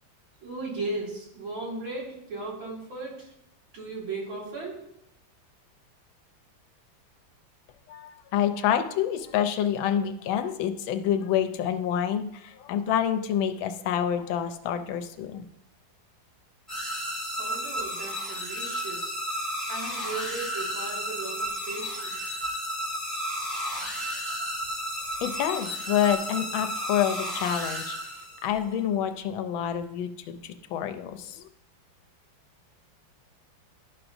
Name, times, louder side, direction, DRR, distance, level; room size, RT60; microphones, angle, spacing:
voice 1, 0.4-3.3 3.7-4.8 17.2-19.4 19.7-22.3, right 3 dB, 80° right, -4 dB, 2.9 m, -36 dB
voice 2, 7.9-15.4 25.2-28.0 28.4-31.4, left 9 dB, 85° left, 8 dB, 1.4 m, -27 dB
sound 1, 16.7-28.5, equal, ahead, 2.6 m, -33 dB
11.0 x 5.9 x 2.6 m, 0.80 s
omnidirectional pair, 2.1 m